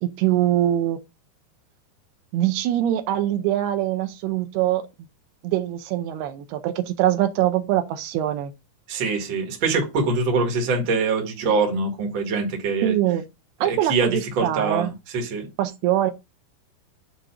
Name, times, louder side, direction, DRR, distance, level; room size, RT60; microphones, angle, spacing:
voice 1, 0.0-1.0 2.3-4.8 5.4-8.5 12.8-13.2 13.6-14.9 15.6-16.1, right 12 dB, 85° right, 2.6 m, -23 dB
voice 2, 8.9-12.9 13.7-14.1 14.3-15.5, right 4 dB, 45° right, 1.7 m, -24 dB
7.5 x 2.6 x 5.8 m
omnidirectional pair, 4.6 m